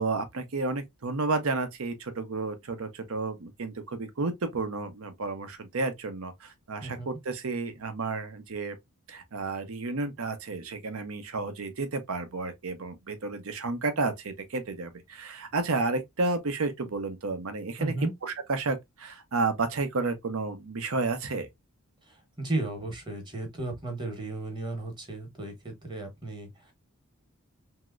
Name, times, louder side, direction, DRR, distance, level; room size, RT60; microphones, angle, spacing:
voice 1, 0.0-8.8 9.1-17.9 18.2-21.5, right 3 dB, 75° right, 0.7 m, -31 dB
voice 2, 17.8-18.1 22.0-26.7, right 2 dB, 20° right, 1.0 m, -34 dB
3.1 x 2.7 x 2.4 m
head